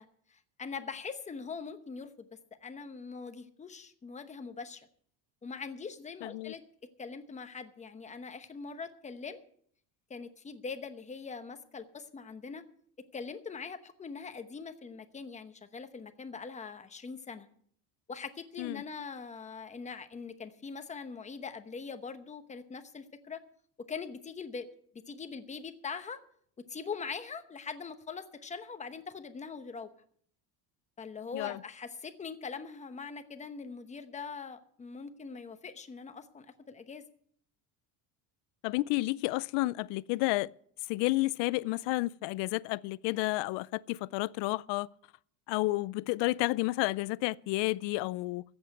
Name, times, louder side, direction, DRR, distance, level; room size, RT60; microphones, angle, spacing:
voice 1, 0.0-2.3 2.6-4.9 5.4-6.6 7.0-9.4 10.1-12.6 13.1-17.5 18.1-23.4 23.9-24.7 25.1-26.2 26.7-29.9 31.0-37.0, left 5 dB, 15° left, 0.9 m, -42 dB
voice 2, 6.2-6.5 18.6-18.8 31.3-31.6 38.6-40.5 40.9-44.9 45.5-48.4, left 21 dB, 85° left, 0.5 m, -31 dB
14.5 x 8.1 x 7.8 m
cardioid pair, 160°, 41 cm